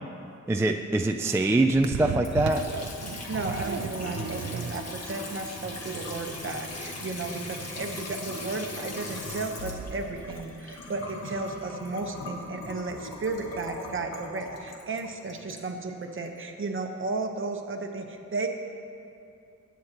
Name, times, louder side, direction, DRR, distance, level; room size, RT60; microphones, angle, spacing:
voice 1, 0.5-2.6, right 2 dB, 10° right, 4 dB, 0.3 m, -23 dB
sound 1, 1.3-10.5, right 6 dB, 75° right, 0.7 m, -37 dB
Water tap faucet / Sink (filling or washing) / Trickle dribble, 2.2-16.3, left 2 dB, 60° left, 1.6 m, -39 dB
voice 2, 3.3-18.5, right 3 dB, 45° right, 4 dB, 1.0 m, -34 dB
23.5 x 9.5 x 3.0 m, 2.6 s
wide cardioid pair, 180°, 29 cm